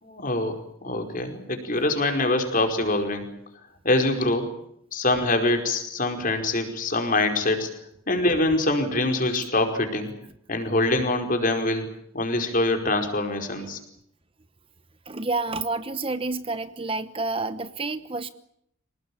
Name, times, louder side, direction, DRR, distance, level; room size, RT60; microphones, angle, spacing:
voice 1, 0.0-0.6 0.8-3.3 3.8-4.5 4.9-7.7 8.1-10.1 10.5-11.9 12.1-13.8, left 2 dB, 40° left, 5 dB, 5.0 m, -24 dB
voice 2, 15.1-18.3, right 3 dB, 25° right, 12 dB, 0.9 m, -29 dB
27.0 x 19.0 x 8.7 m, 0.74 s
head